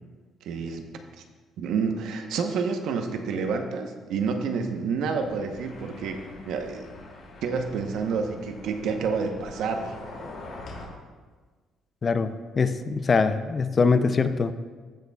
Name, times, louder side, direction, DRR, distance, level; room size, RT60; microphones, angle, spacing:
voice 1, 0.4-0.9 1.2-1.3 1.6-6.9 7.4-9.9, right 5 dB, 70° right, 5 dB, 0.9 m, -29 dB
sound 1, 5.2-10.8, left 2 dB, 55° left, 2.5 m, -44 dB
voice 2, 12.0-14.5, left 4 dB, 30° left, 11 dB, 0.4 m, -23 dB
15.5 x 6.7 x 2.3 m, 1.4 s
cardioid pair, 150°, 0 cm